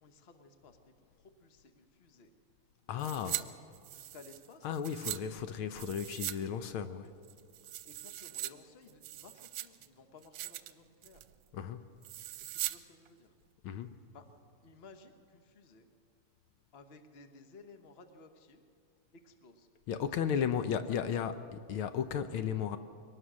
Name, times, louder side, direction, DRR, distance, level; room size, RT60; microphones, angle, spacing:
voice 1, 0.0-2.3 2.8-3.5 3.9-5.2 5.5-5.7 6.1-6.7 7.8-11.2 12.4-13.3 14.1-14.2 14.6-15.9 16.7-18.6 19.1-19.7 20.1-20.2 20.4-21.1, left 3 dB, 35° left, 7 dB, 1.2 m, -57 dB
voice 2, 2.9-3.4 4.6-7.1 11.5-11.9 13.6-14.0 19.9-22.8, left 8 dB, 75° left, 10 dB, 1.6 m, -34 dB
sound 1, 3.0-3.4 3.7-5.2 5.8-6.4 6.6-6.7 7.2-8.5 8.9-9.9 10.2-10.7 11.0-11.3 12.0-12.8 13.1-13.2, right 15 dB, 85° right, 1.6 m, -40 dB
23.0 x 19.0 x 6.3 m, 2.3 s
omnidirectional pair, 2.4 m